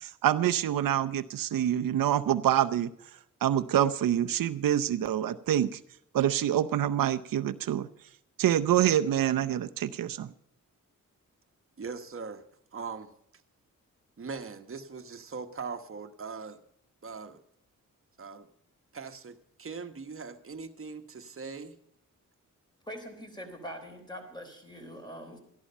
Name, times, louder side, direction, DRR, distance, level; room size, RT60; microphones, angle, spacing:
voice 1, 0.0-2.9 3.4-5.8 6.1-7.9 8.4-10.3, right 11 dB, 80° right, 10 dB, 0.7 m, -26 dB
voice 2, 11.8-12.4 12.7-13.1 14.2-16.6 17.0-17.4 18.2-18.5 18.9-21.8, right 5 dB, 40° right, 7 dB, 1.2 m, -40 dB
voice 3, 22.9-25.4, equal, 15° left, 4 dB, 3.8 m, -43 dB
13.5 x 11.5 x 5.4 m, 0.71 s
cardioid pair, 80°, 33 cm